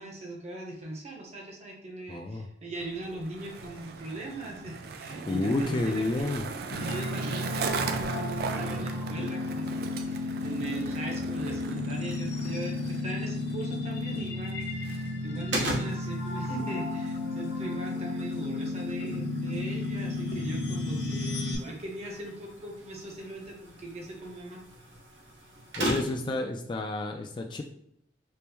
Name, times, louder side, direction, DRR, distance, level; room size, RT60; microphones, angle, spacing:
voice 1, 0.0-6.3 6.8-24.6, right 2 dB, 40° right, 0 dB, 0.8 m, -40 dB
voice 2, 2.1-2.5 5.3-6.5 25.8-27.6, left 2 dB, 25° left, 4 dB, 0.3 m, -30 dB
Skateboard, 2.7-15.5, right 5 dB, 60° right, 0.3 m, -38 dB
sound 1, 6.7-21.6, left 2 dB, 65° left, 0.6 m, -33 dB
sound 2, 15.5-26.4, right 1 dB, 90° right, 0.9 m, -39 dB
4.4 x 2.0 x 3.4 m, 0.70 s
head